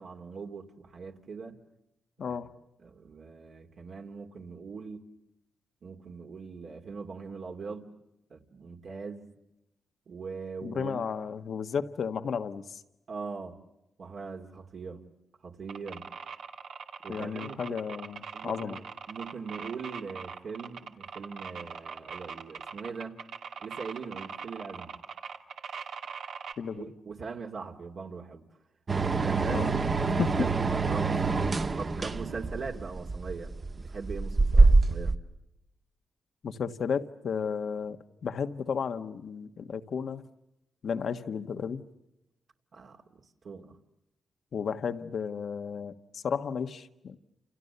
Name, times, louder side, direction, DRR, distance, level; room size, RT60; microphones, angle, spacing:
voice 1, 0.0-1.6 2.2-2.4 2.8-5.1 5.8-7.9 8.3-9.3 10.1-11.1 13.1-13.6 14.0-15.0 15.4-16.1 17.0-17.8 18.3-18.8 19.1-23.2 23.6-25.0 26.8-28.5 29.0-30.5 30.9-35.2 42.7-43.7, right 5 dB, 60° right, 1 dB, 2.4 m, -41 dB
voice 2, 2.2-2.5 10.6-12.8 17.1-18.8 26.6-26.9 29.5-29.7 30.0-30.5 36.4-40.3 40.8-41.8 44.5-47.2, left 6 dB, 65° left, 9 dB, 1.5 m, -33 dB
sound 1, 15.7-26.5, right 6 dB, 80° right, 2.4 m, -41 dB
sound 2, 28.9-35.1, right 3 dB, 35° right, 1.5 m, -25 dB
29.5 x 29.0 x 6.9 m, 0.90 s
cardioid pair, 100°, 0 cm